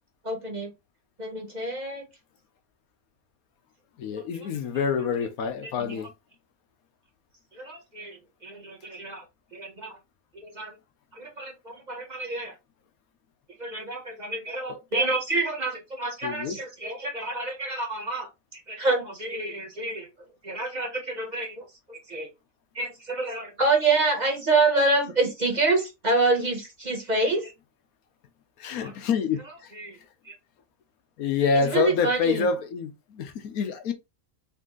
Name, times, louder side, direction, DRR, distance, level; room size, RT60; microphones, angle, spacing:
voice 1, 0.2-0.7 1.2-2.1 4.1-4.5 5.6-6.0 7.5-9.3 9.5-10.0 10.3-10.7 11.1-12.5 13.6-20.1 20.4-22.3 22.7-27.5 28.8-28.9 29.7-30.0 30.2-30.3 31.5-32.5, right 3 dB, 30° right, 1.2 m, -28 dB
voice 2, 4.0-6.1 16.2-16.6 28.6-29.7 31.2-33.9, left 5 dB, 85° left, 1.2 m, -27 dB
4.2 x 2.7 x 3.7 m
omnidirectional pair, 1.5 m